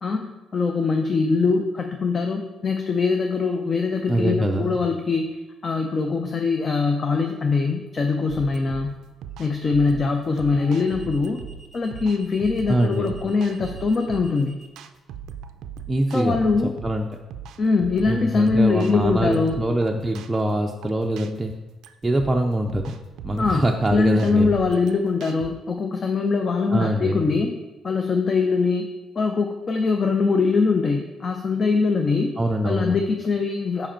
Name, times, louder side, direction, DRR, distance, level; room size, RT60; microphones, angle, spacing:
voice 1, 0.0-5.4 5.6-8.9 9.4-11.4 11.7-14.6 16.1-16.7 17.6-19.6 23.4-27.5 27.8-28.9 29.2-32.3 32.6-33.9, left 4 dB, 40° left, 4 dB, 0.5 m, -22 dB
voice 2, 4.1-4.8 12.7-13.1 15.9-16.4 16.8-17.1 18.1-21.5 22.0-22.9 23.2-24.6 26.7-27.2 32.4-33.0, right 1 dB, 15° right, 1 dB, 0.4 m, -23 dB
sound 1, 6.5-6.6 9.6-14.7, equal, 20° left, 1.2 m, -50 dB
sound 2, 8.3-25.5, right 8 dB, 85° right, 0.3 m, -39 dB
5.2 x 4.9 x 4.4 m, 1.1 s
cardioid pair, 90°, 0 cm